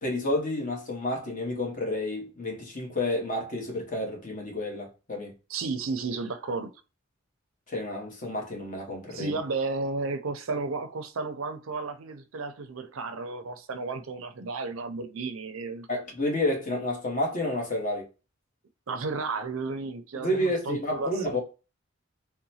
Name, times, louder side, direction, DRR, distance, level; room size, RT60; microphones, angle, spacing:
voice 1, 0.0-5.3 7.7-9.4 15.9-18.1 20.1-21.4, left 1 dB, 40° left, 1.2 m, -30 dB
voice 2, 5.5-6.7 9.1-15.9 18.9-21.4, right 3 dB, 85° right, 0.5 m, -33 dB
3.8 x 2.2 x 2.7 m
head